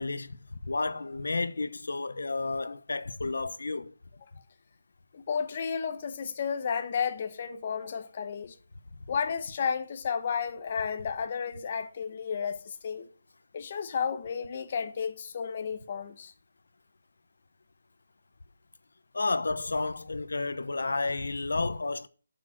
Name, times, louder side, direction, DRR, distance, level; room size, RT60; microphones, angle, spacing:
voice 1, 0.0-3.9 19.1-22.1, left 3 dB, 85° left, 1.0 m, -31 dB
voice 2, 5.1-8.5 9.1-13.1 13.5-16.3, left 6 dB, 30° left, 1.0 m, -32 dB
10.5 x 6.9 x 7.7 m
hypercardioid pair, 175°, 0 cm